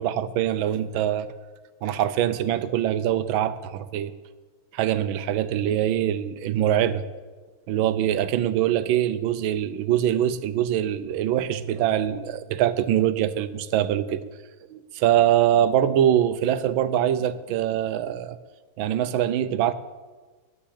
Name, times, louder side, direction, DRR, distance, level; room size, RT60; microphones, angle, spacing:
voice 1, 0.0-1.3 1.8-4.1 4.7-7.0 7.7-14.2 14.7-18.4 18.8-19.7, right 11 dB, 80° right, 13 dB, 1.5 m, -23 dB
10.0 x 8.6 x 8.5 m, 1.3 s
omnidirectional pair, 2.2 m